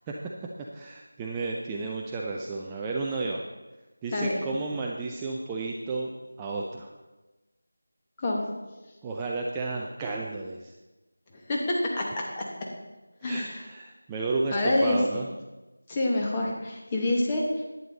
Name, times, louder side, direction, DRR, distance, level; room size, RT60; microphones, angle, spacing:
voice 1, 0.7-3.4 4.0-6.1 6.4-6.9 9.0-10.7 13.2-15.3, right 3 dB, 10° right, -2 dB, 0.5 m, -32 dB
voice 2, 13.2-13.6 14.5-15.0 15.9-17.6, left 2 dB, 20° left, -2 dB, 1.5 m, -27 dB
11.0 x 9.4 x 4.0 m, 1.1 s
figure-of-eight pair, 170°, 0 cm